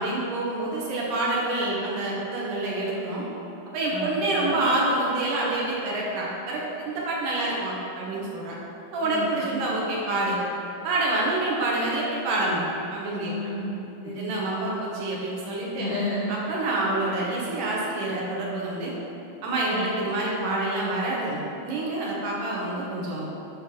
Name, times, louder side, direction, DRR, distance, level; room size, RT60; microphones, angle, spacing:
voice 1, 0.0-3.3 3.7-8.6 8.9-10.4 10.8-12.7 12.9-13.3 14.2-15.9 16.3-18.9 19.4-23.3, right 2 dB, 70° right, -4 dB, 2.5 m, -27 dB
voice 2, 3.9-4.6 9.0-9.3 9.5-9.7 13.2-14.7 15.8-16.3 19.7-19.9, left 2 dB, 85° left, -6 dB, 1.3 m, -33 dB
9.5 x 3.3 x 6.0 m, 2.9 s
omnidirectional pair, 4.2 m